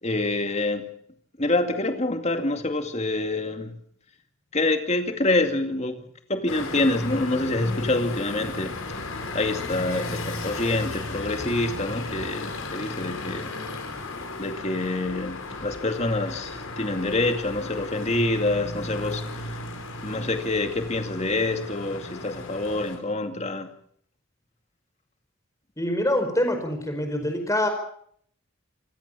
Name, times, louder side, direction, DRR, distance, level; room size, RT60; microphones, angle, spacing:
voice 1, 0.0-0.9 1.4-3.7 4.5-13.5 14.4-19.7 20.0-23.7, left 2 dB, 30° left, 6 dB, 2.4 m, -26 dB
sound 1, 6.5-23.0, left 2 dB, 80° left, 5.8 m, -35 dB
voice 2, 25.8-27.7, left 1 dB, 15° left, 6 dB, 4.7 m, -25 dB
27.5 x 16.5 x 7.0 m, 0.65 s
head